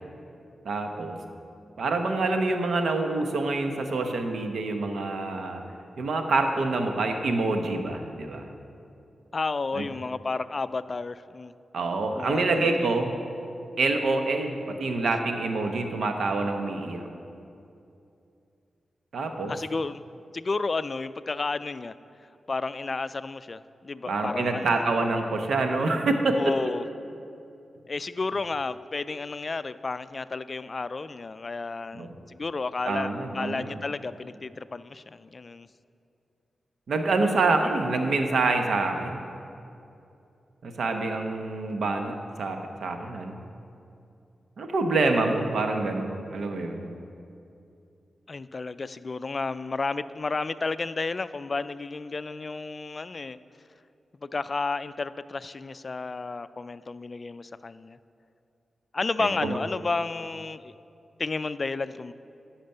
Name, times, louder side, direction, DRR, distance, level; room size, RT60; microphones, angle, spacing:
voice 1, 0.6-1.2 1.8-5.6 6.0-8.5 9.7-9.8 11.7-13.1 13.8-17.1 19.1-19.5 24.1-26.4 31.9-32.1 32.8-33.7 36.9-39.2 40.6-43.4 44.6-46.9 59.2-59.6, right 3 dB, 75° right, 5 dB, 0.9 m, -26 dB
voice 2, 9.3-11.5 12.2-12.8 19.5-20.0 20.3-21.9 22.5-24.8 26.3-26.8 27.9-35.7 48.3-53.4 54.2-58.0 58.9-60.7 61.2-62.1, left 3 dB, 50° left, 15 dB, 0.3 m, -32 dB
10.0 x 5.9 x 6.7 m, 2.6 s
cardioid pair, 45°, 0 cm